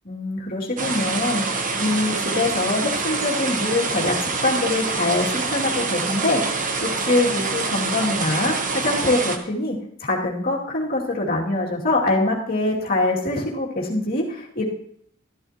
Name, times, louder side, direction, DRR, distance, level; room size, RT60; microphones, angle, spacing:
voice 1, 0.0-14.7, left 2 dB, 45° left, -2 dB, 2.4 m, -24 dB
sound 1, 0.8-9.4, right 4 dB, 40° right, 1.1 m, -26 dB
13.0 x 13.0 x 2.9 m, 0.67 s
head